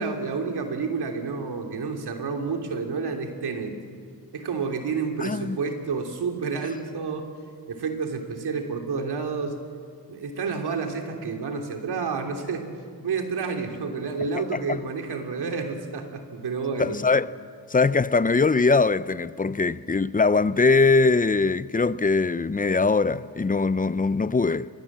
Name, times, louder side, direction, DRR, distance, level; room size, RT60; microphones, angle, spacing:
voice 1, 0.0-3.7 4.3-7.3 7.7-9.6 10.1-12.7 13.0-17.0, right 5 dB, 80° right, 3.2 m, -30 dB
voice 2, 5.2-5.6 14.5-14.8 16.8-17.3 17.7-24.7, left 4 dB, 20° left, 0.7 m, -22 dB
24.5 x 22.0 x 7.5 m
cardioid pair, 70°, 39 cm